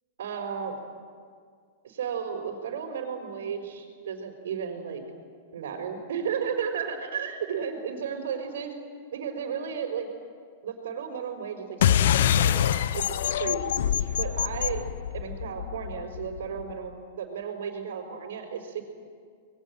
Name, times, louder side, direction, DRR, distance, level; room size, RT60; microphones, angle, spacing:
voice 1, 0.2-0.8 1.8-5.0 5.5-8.7 9.1-10.1 10.6-13.8 14.1-14.8 15.1-18.8, right 7 dB, 80° right, 0 dB, 4.9 m, -34 dB
sound 1, 11.8-16.7, left 10 dB, 70° left, 0.8 m, -25 dB
26.0 x 21.5 x 9.1 m, 2.1 s
supercardioid pair, 150°, 0 cm